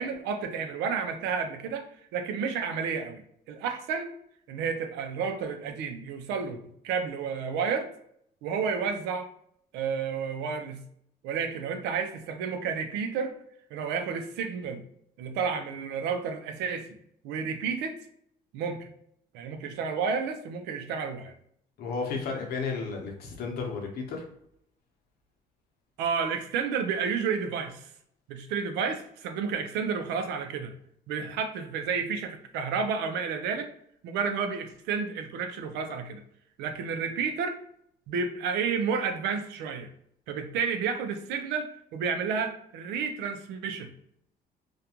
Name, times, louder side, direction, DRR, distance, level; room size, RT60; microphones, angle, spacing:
voice 1, 0.0-3.2 3.5-4.1 4.5-6.6 6.8-7.9 8.4-9.3 9.7-10.8 11.2-13.3 13.7-14.8 15.2-16.9 17.2-18.0 18.5-18.9 19.3-21.3 26.0-27.8 28.3-30.7 31.1-33.7 34.0-36.2 36.6-37.6 38.1-39.9 40.3-43.9, right 6 dB, 90° right, 7 dB, 0.4 m, -31 dB
voice 2, 21.8-24.2, left 4 dB, 70° left, 1 dB, 0.8 m, -33 dB
2.4 x 2.2 x 2.8 m, 0.69 s
cardioid pair, 110°, 17 cm